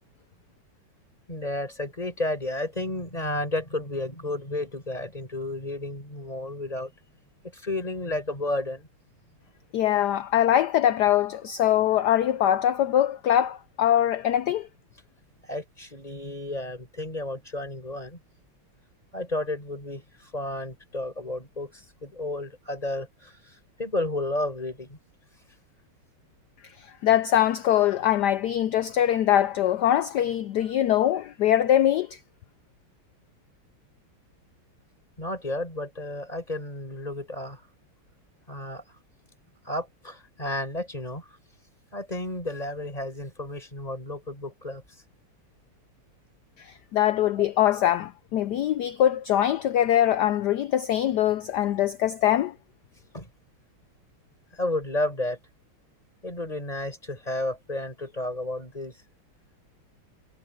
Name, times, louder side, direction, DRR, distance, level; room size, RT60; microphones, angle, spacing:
voice 1, 1.3-6.9 7.4-8.9 15.4-18.2 19.1-25.0 35.2-37.6 38.5-38.8 39.6-41.3 41.9-44.8 53.1-53.3 54.5-55.4 56.2-59.0, left 1 dB, 15° left, 6.2 m, -32 dB
voice 2, 9.7-14.7 26.8-32.2 46.6-52.5, left 11 dB, 90° left, 0.9 m, -23 dB
omnidirectional pair, 2.4 m